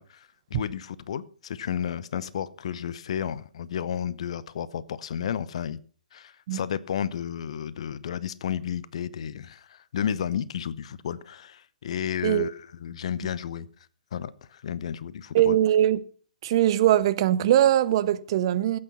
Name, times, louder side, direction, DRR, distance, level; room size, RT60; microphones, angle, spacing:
voice 1, 0.0-5.8 6.1-13.7 14.1-15.6, left 9 dB, 45° left, 0.8 m, -32 dB
voice 2, 15.3-16.0 16.4-18.8, right 12 dB, 35° right, 0.7 m, -21 dB
16.5 x 8.7 x 5.6 m
figure-of-eight pair, 125°, 4 cm